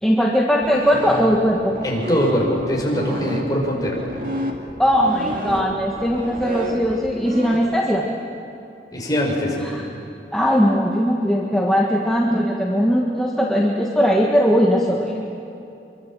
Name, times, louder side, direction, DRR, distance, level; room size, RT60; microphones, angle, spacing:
voice 1, 0.0-1.8 4.8-8.1 9.6-9.8 10.3-15.3, equal, ahead, -2 dB, 1.5 m, -19 dB
sound 1, 0.6-7.6, right 1 dB, 50° right, 2.3 m, -30 dB
voice 2, 1.8-4.0 8.9-9.6, equal, 20° left, -2 dB, 5.2 m, -22 dB
25.0 x 23.5 x 7.5 m, 2.8 s
head